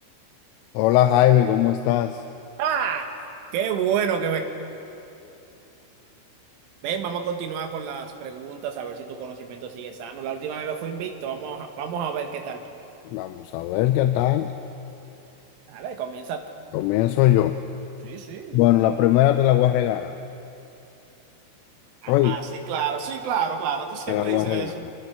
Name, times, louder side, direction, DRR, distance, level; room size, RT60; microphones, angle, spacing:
voice 1, 0.7-2.2 13.1-14.5 16.7-17.6 18.5-20.2 22.1-22.4 24.1-24.9, left 13 dB, 85° left, 8 dB, 3.2 m, -20 dB
voice 2, 2.6-3.1 3.5-4.5 6.8-12.6 15.7-16.4 18.0-18.6 22.0-24.8, right 7 dB, 75° right, 5 dB, 3.9 m, -29 dB
28.0 x 24.0 x 5.8 m, 2.8 s
omnidirectional pair, 5.8 m